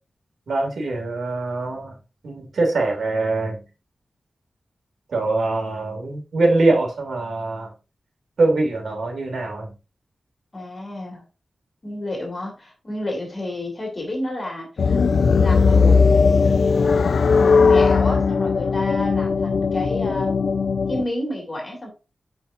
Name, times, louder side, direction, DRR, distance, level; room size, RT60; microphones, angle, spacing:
voice 1, 0.5-1.9 2.2-3.6 5.1-7.7 8.4-9.7, right 2 dB, 85° right, 2 dB, 2.4 m, -23 dB
voice 2, 10.5-11.2 11.8-15.0 15.4-16.6 17.4-20.4 20.9-21.9, left 1 dB, 35° left, 0 dB, 3.0 m, -30 dB
sound 1, 14.8-21.0, left 5 dB, 80° left, 0.5 m, -18 dB
7.0 x 5.8 x 2.6 m, 0.29 s
wide cardioid pair, 80°, 0 cm